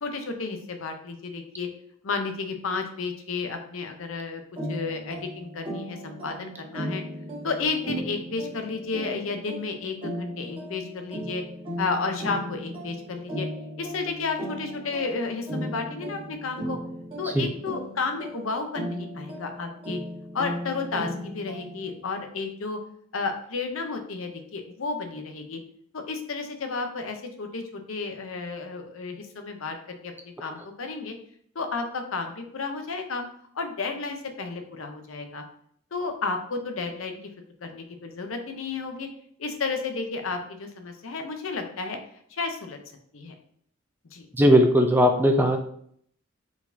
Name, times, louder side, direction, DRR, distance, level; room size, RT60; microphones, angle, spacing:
voice 1, 0.0-1.7 2.0-4.4 4.7-7.0 7.4-11.4 11.8-13.5 13.8-16.8 17.2-20.0 20.3-22.8 23.1-25.6 25.9-31.1 31.5-33.2 33.5-35.4 35.9-37.2 37.6-39.1 39.4-42.0 42.3-42.8 43.1-43.3 44.1-44.3, left 4 dB, 70° left, 5 dB, 0.7 m, -32 dB
sound 1, 4.6-22.0, equal, 25° right, 1.3 m, -36 dB
voice 2, 44.4-45.6, equal, 10° right, 4 dB, 0.3 m, -18 dB
4.7 x 4.0 x 2.7 m, 0.64 s
head